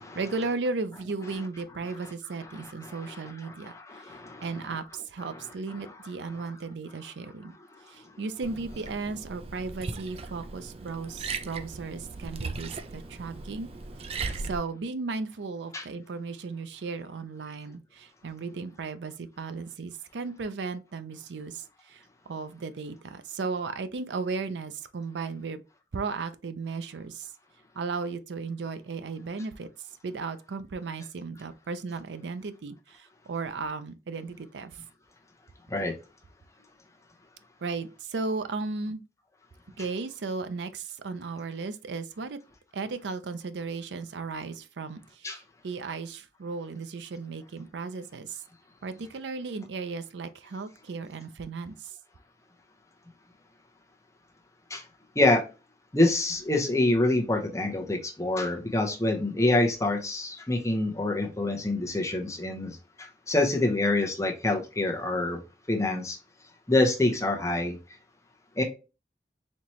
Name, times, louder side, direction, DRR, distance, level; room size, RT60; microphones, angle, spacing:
voice 1, 0.1-7.6 7.9-13.7 14.0-22.0 22.3-25.6 25.9-27.3 27.8-34.8 37.6-39.0 39.8-42.4 42.7-48.4 48.8-51.9, right 4 dB, 90° right, 0.5 m, -35 dB
voice 2, 2.5-4.5 5.3-5.4 15.7-15.8 35.7-35.9 45.2-45.4 54.7-54.8 55.1-55.4 55.9-65.4 65.7-66.2 66.7-67.8 68.6-68.7, left 2 dB, 15° left, 0.8 m, -26 dB
Liquid, 8.4-14.6, right 4 dB, 35° right, 0.4 m, -38 dB
4.2 x 3.0 x 3.0 m
head